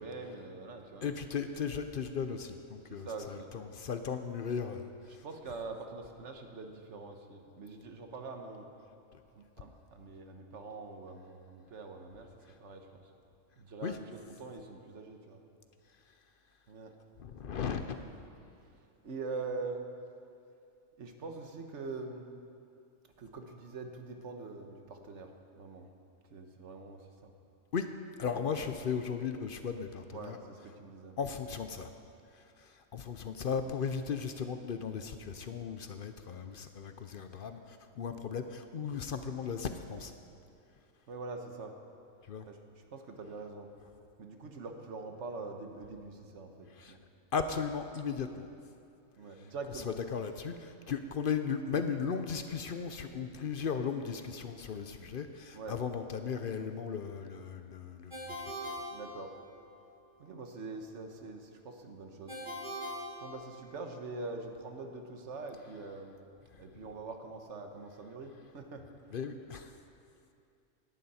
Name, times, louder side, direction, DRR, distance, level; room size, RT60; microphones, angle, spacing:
voice 1, 0.0-1.2 2.9-3.5 5.1-8.7 9.3-13.0 13.6-15.4 16.7-16.9 19.0-19.8 21.0-22.3 23.2-25.9 26.3-27.3 28.3-28.5 30.1-31.1 41.1-41.8 42.5-43.7 44.2-47.0 49.2-50.0 51.7-51.9 55.5-55.8 58.9-59.3 60.2-62.4 63.2-66.2 66.6-68.8, right 3 dB, 65° right, 5 dB, 1.4 m, -44 dB
voice 2, 1.0-4.9 13.8-14.0 17.2-18.0 27.7-27.9 28.2-30.4 31.2-31.9 32.6-40.1 42.3-42.4 46.8-47.0 47.3-48.5 49.9-58.3 58.6-58.7 69.1-69.7, left 6 dB, 55° left, 8 dB, 0.7 m, -36 dB
Ringtone, 58.1-59.8 62.3-64.0, equal, 35° right, 2.4 m, -42 dB
17.0 x 11.5 x 4.2 m, 2.5 s
omnidirectional pair, 1.3 m